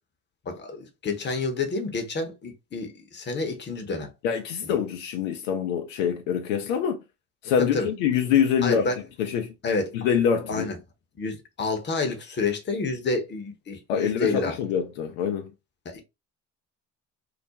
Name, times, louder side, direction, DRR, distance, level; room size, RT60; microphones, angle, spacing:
voice 1, 0.4-4.1 4.6-4.8 7.6-7.9 8.6-9.0 9.6-10.1 10.5-10.8 11.2-14.6 15.8-16.0, left 3 dB, 25° left, 0.8 m, -29 dB
voice 2, 4.2-7.0 7.4-8.9 9.2-9.5 9.9-10.7 13.9-15.5, left 8 dB, 70° left, 0.5 m, -25 dB
2.4 x 2.0 x 2.7 m
figure-of-eight pair, 50°, 39 cm